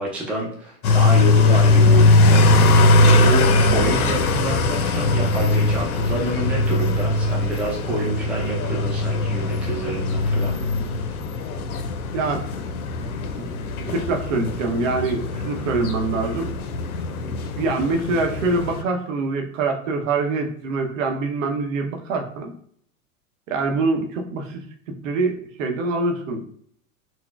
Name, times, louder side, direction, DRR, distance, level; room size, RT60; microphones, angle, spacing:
voice 1, 0.0-10.5, right 2 dB, 5° right, -3 dB, 0.4 m, -28 dB
sound 1, 0.8-18.8, left 2 dB, 85° left, 0.6 m, -20 dB
voice 2, 12.1-12.4 13.0-16.5 17.3-22.5 23.5-24.6 25.0-26.4, right 3 dB, 60° right, 4 dB, 0.7 m, -25 dB
3.9 x 2.1 x 2.2 m, 0.63 s
hypercardioid pair, 105°, 43 cm